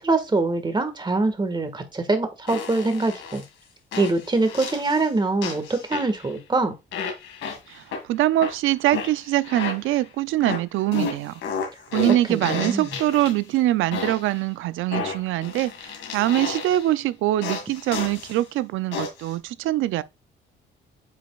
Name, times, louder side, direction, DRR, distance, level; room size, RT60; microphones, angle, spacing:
voice 1, 0.0-3.4 4.0-6.7 12.3-12.9, right 3 dB, 20° right, 1.7 m, -24 dB
sound 1, 2.5-3.4 3.9-5.1 5.4-6.4 6.9-8.0 8.4-10.0 10.4-13.5 13.9-14.4 14.9-16.9 17.4-18.4 18.9-19.3, left 5 dB, 80° left, 2.1 m, -32 dB
voice 2, 7.7-11.3 11.9-20.0, right 14 dB, 85° right, 0.5 m, -23 dB
8.9 x 5.2 x 2.4 m
cardioid pair, 90°, 20 cm